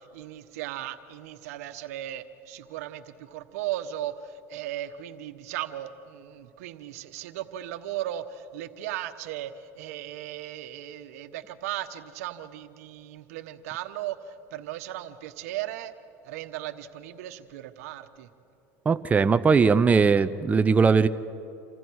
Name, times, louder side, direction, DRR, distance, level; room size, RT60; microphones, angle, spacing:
voice 1, 0.0-15.9 16.2-18.3, right 13 dB, 80° right, 10 dB, 1.2 m, -37 dB
voice 2, 18.9-21.1, right 5 dB, 20° right, 11 dB, 0.6 m, -20 dB
28.0 x 26.0 x 4.8 m, 2.8 s
supercardioid pair, 115°, 8 cm